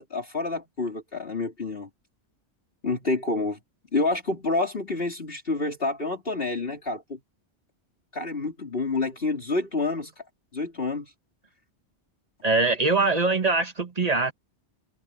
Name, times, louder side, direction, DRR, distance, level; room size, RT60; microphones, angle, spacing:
voice 1, 0.0-1.9 2.8-3.6 3.9-7.2 8.1-10.2 10.5-11.1, left 3 dB, 55° left, 3.7 m, -28 dB
voice 2, 12.4-14.3, right 3 dB, 35° right, 1.6 m, -23 dB
omnidirectional pair, 1.1 m